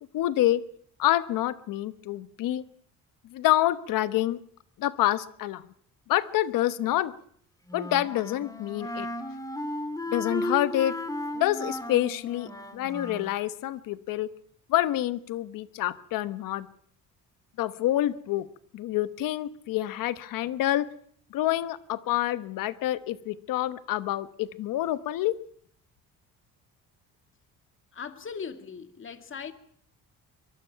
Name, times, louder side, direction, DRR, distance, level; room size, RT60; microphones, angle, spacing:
voice 1, 0.1-0.6 1.0-2.6 3.3-4.4 4.8-5.6 6.1-7.1 7.7-9.1 10.1-11.0 11.3-14.3 14.7-16.7 17.6-18.5 18.7-20.9 21.3-25.3, left 14 dB, 80° left, 1.1 m, -27 dB
Wind instrument woodwind instrument, 7.7-13.3, left 1 dB, 10° left, 2.0 m, -35 dB
voice 2, 27.9-29.5, left 6 dB, 40° left, 2.1 m, -39 dB
23.0 x 23.0 x 5.8 m
cardioid pair, 120°, 33 cm